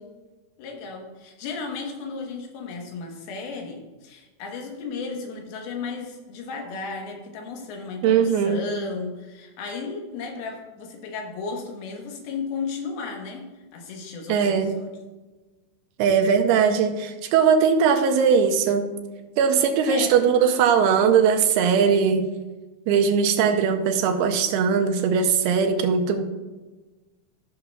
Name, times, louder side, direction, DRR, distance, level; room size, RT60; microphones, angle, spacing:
voice 1, 0.6-13.4 13.7-14.9 19.9-20.5, left 4 dB, 75° left, 2 dB, 3.0 m, -34 dB
voice 2, 8.0-8.6 14.3-14.7 16.0-18.9 19.4-22.2 22.9-26.2, right 6 dB, 90° right, 5 dB, 2.7 m, -20 dB
15.0 x 6.3 x 2.3 m, 1.2 s
omnidirectional pair, 4.6 m